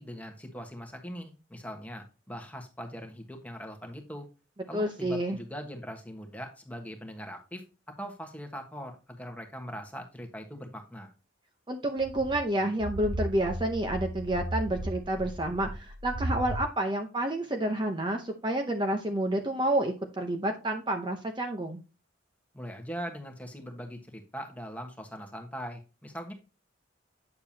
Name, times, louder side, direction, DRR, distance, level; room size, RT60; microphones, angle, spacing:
voice 1, 0.0-4.3 4.7-11.1 22.5-26.3, equal, 10° left, 3 dB, 1.3 m, -41 dB
voice 2, 4.7-5.4 11.7-21.8, right 1 dB, 25° right, 4 dB, 0.8 m, -29 dB
sound 1, 12.0-16.6, right 1 dB, 80° right, 0.8 m, -35 dB
8.7 x 6.8 x 2.8 m, 0.31 s
head